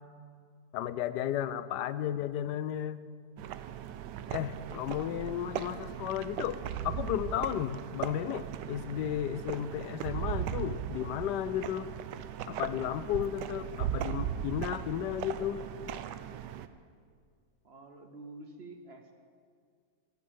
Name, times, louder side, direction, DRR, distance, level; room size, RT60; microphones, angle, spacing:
voice 1, 0.7-3.0 4.3-11.9 12.5-15.6, left 11 dB, 80° left, 15 dB, 1.2 m, -34 dB
sound 1, 3.4-16.7, right 10 dB, 85° right, 1.3 m, -38 dB
voice 2, 17.6-19.2, right 2 dB, 50° right, 6 dB, 0.9 m, -48 dB
14.0 x 8.7 x 8.7 m, 2.1 s
omnidirectional pair, 1.8 m